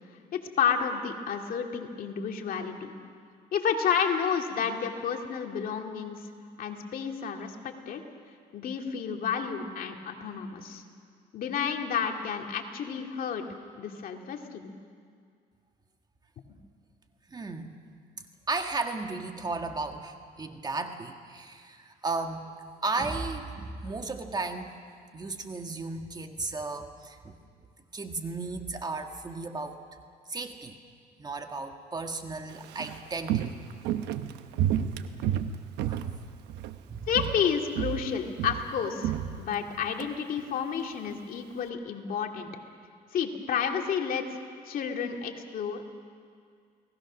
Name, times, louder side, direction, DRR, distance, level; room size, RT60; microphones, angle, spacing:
voice 1, 0.3-2.9 3.5-6.2 6.6-8.0 8.5-10.8 11.3-13.4 13.7-14.7 16.5-16.6 37.1-42.5 43.1-44.4 44.7-45.8, left 7 dB, 55° left, 3 dB, 2.3 m, -31 dB
voice 2, 17.3-17.8 18.5-22.5 22.8-24.8 25.1-27.4 27.9-29.8 30.3-30.8 31.2-33.5 34.3-34.4 35.9-36.0 36.8-37.1, right 3 dB, 25° right, 5 dB, 1.6 m, -34 dB
Walk footsteps, 32.5-36.8 37.1-37.5 37.8-40.1 40.4-40.5, right 10 dB, 90° right, 1.0 m, -31 dB
30.0 x 19.0 x 6.3 m, 2.2 s
cardioid pair, 110°, 17 cm